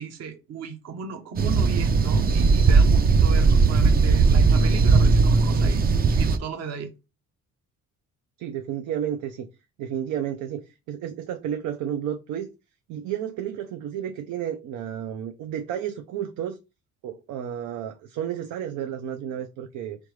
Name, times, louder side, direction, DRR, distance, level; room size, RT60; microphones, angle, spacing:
voice 1, 0.0-6.9, right 6 dB, 55° right, 0.8 m, -35 dB
sound 1, 1.4-6.4, right 4 dB, 30° right, 0.4 m, -18 dB
voice 2, 8.4-9.5 9.8-12.5 12.9-16.6 17.0-20.0, right 10 dB, 85° right, 0.5 m, -32 dB
3.7 x 3.4 x 3.1 m
cardioid pair, 90°, 30 cm